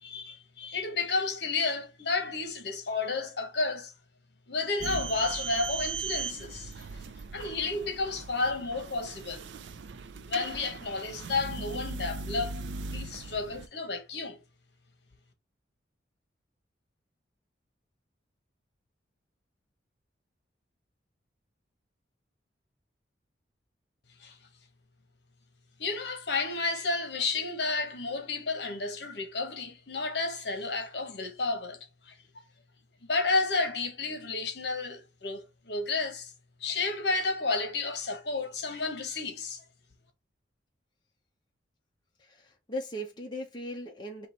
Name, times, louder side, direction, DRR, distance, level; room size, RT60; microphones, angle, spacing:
voice 1, 0.0-3.9 4.5-7.0 7.3-9.5 10.3-12.6 12.9-14.4 24.2-24.4 25.8-31.8 32.1-32.2 33.0-36.3 36.6-39.6, left 3 dB, 60° left, 1.1 m, -31 dB
sound 1, 4.8-13.7, right 4 dB, 70° right, 0.4 m, -39 dB
voice 2, 42.2-44.3, equal, 25° left, 0.8 m, -38 dB
3.8 x 3.0 x 4.2 m
head